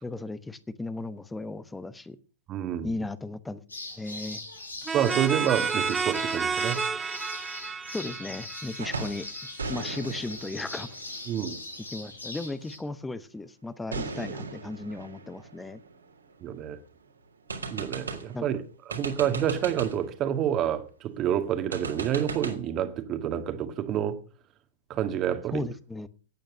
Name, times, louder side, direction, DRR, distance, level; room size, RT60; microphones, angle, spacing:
voice 1, 0.0-2.2 2.8-3.6 4.0-4.4 7.9-9.3 9.7-11.0 11.9-15.8 18.3-18.5 25.5-26.1, left 2 dB, 10° left, 1.0 m, -35 dB
voice 2, 2.5-2.9 4.9-6.8 11.3-11.6 16.4-16.8 17.7-18.6 18.9-24.2 24.9-25.7, right 10 dB, 30° right, 2.0 m, -28 dB
sound 1, 3.7-12.8, left 2 dB, 85° left, 5.0 m, -41 dB
sound 2, 4.9-9.4, right 5 dB, 15° right, 0.6 m, -31 dB
sound 3, 8.8-9.3 9.6-12.2 13.9-16.6 17.0-17.1 17.5-18.4 18.9-20.1 21.7-22.6, right 4 dB, 80° right, 3.4 m, -37 dB
17.0 x 9.2 x 6.4 m
figure-of-eight pair, 105°, 0 cm